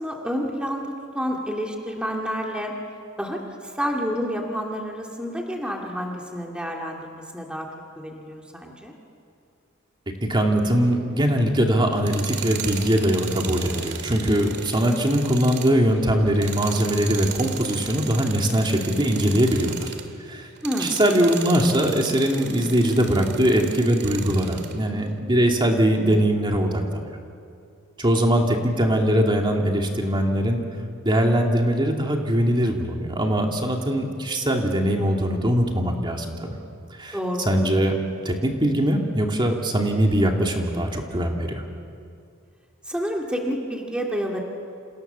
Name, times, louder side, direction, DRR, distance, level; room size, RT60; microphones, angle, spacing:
voice 1, 0.0-2.7 3.2-7.7 8.0-8.9 20.6-21.0 37.1-37.4 42.9-44.4, equal, 5° right, 0 dB, 2.4 m, -29 dB
voice 2, 10.2-19.9 20.3-20.5 20.8-27.0 28.0-30.6 31.0-36.6 37.0-37.2 37.5-37.9 38.2-41.6, equal, 20° right, 1 dB, 2.5 m, -21 dB
Tools, 11.9-20.1 20.6-24.8, right 7 dB, 55° right, 2.2 m, -36 dB
29.5 x 28.5 x 6.9 m, 2.4 s
head